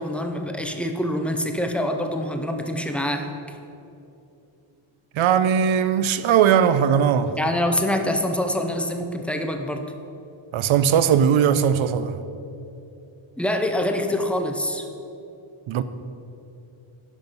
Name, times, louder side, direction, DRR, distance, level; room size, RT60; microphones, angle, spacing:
voice 1, 0.0-3.3 7.4-9.9 13.4-14.8, left 1 dB, 5° left, 0.4 m, -25 dB
voice 2, 5.1-7.4 10.5-12.2 15.7-15.8, right 8 dB, 70° right, 0.6 m, -19 dB
11.0 x 6.2 x 5.3 m
wide cardioid pair, 175°, 50 cm